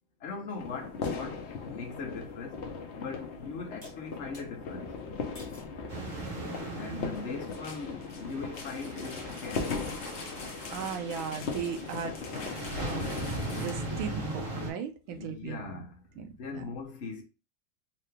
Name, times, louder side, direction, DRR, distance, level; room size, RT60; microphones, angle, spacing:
voice 1, 0.2-2.6 3.0-4.9 6.8-9.8 15.1-17.2, left 4 dB, 50° left, 0.9 m, -40 dB
sound 1, 0.6-13.7, left 4 dB, 90° left, 0.6 m, -38 dB
sound 2, 3.8-4.5 5.3-5.7 6.4-6.8, left 1 dB, 15° left, 1.0 m, -53 dB
sound 3, 5.9-14.7, right 1 dB, 40° right, 1.7 m, -39 dB
voice 2, 5.9-7.1 10.7-12.2 12.8-13.2 13.5-15.8 16.2-16.7, right 7 dB, 80° right, 1.5 m, -38 dB
3.7 x 2.9 x 3.3 m
omnidirectional pair, 2.2 m